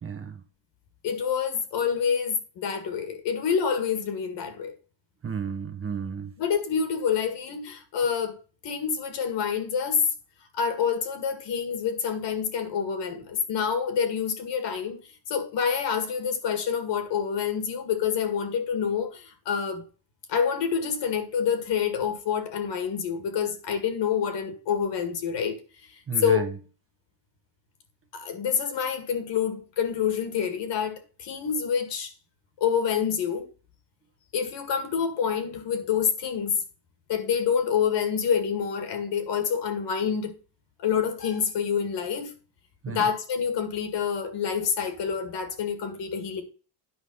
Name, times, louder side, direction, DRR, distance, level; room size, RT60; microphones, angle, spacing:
voice 1, 0.0-0.4 5.2-6.3 26.1-26.5 42.8-43.1, right 7 dB, 30° right, 1.1 m, -32 dB
voice 2, 1.0-4.8 6.4-8.4 8.6-10.0 10.5-15.0 15.3-19.8 20.3-25.6 26.2-26.5 28.1-32.1 32.6-33.5 34.3-36.6 37.1-40.3 40.8-42.3 42.9-46.4, left 7 dB, 60° left, 2.1 m, -27 dB
9.8 x 5.0 x 5.5 m
cardioid pair, 120°, 47 cm